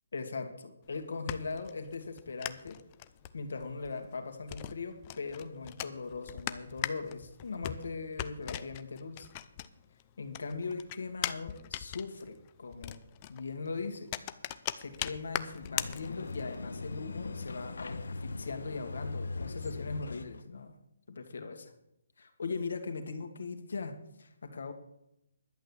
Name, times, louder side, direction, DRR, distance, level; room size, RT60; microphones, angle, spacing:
voice 1, 0.1-2.8 3.3-9.3 10.2-13.0 13.3-14.1 14.8-20.8 21.1-21.7 22.2-24.7, left 4 dB, 75° left, 6 dB, 2.3 m, -40 dB
sound 1, 0.8-10.0 10.3-16.6, left 13 dB, 25° left, 0.5 m, -40 dB
sound 2, 15.4-20.4, left 3 dB, 90° left, 1.3 m, -40 dB
11.5 x 8.1 x 7.2 m, 0.80 s
hypercardioid pair, 170°, 0 cm